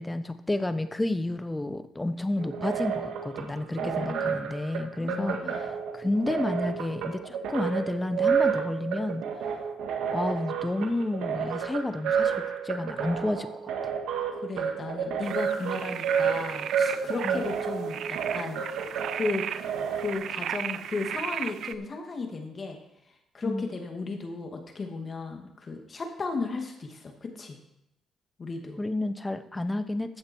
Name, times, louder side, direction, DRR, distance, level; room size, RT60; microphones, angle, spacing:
voice 1, 0.0-5.7 5.9-9.2 10.1-12.3 12.6-13.5 17.2-17.4 23.4-23.7 28.8-30.2, left 2 dB, 15° left, 10 dB, 0.9 m, -30 dB
sound 1, 2.4-20.1, right 7 dB, 90° right, 1.7 m, -30 dB
voice 2, 3.8-4.4 5.0-5.6 14.3-18.7 19.1-19.7 19.9-22.8 23.3-27.6 28.4-28.8, left 3 dB, 40° left, 3 dB, 2.3 m, -35 dB
sound 2, 15.2-21.8, right 9 dB, 70° right, 0.5 m, -36 dB
15.0 x 6.6 x 4.6 m, 0.83 s
cardioid pair, 90°, 0 cm